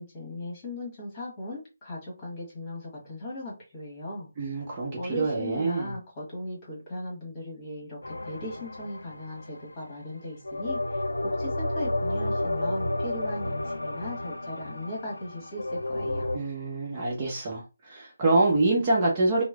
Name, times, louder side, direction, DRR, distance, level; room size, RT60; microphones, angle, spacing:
voice 1, 0.0-4.3 5.0-16.3, left 1 dB, 25° left, 1.4 m, -38 dB
voice 2, 4.4-5.9 16.3-19.4, right 2 dB, 30° right, 0.7 m, -26 dB
sound 1, 8.0-9.7 10.4-16.4, left 1 dB, 85° left, 0.3 m, -31 dB
3.0 x 2.0 x 2.3 m
figure-of-eight pair, 155°, 0 cm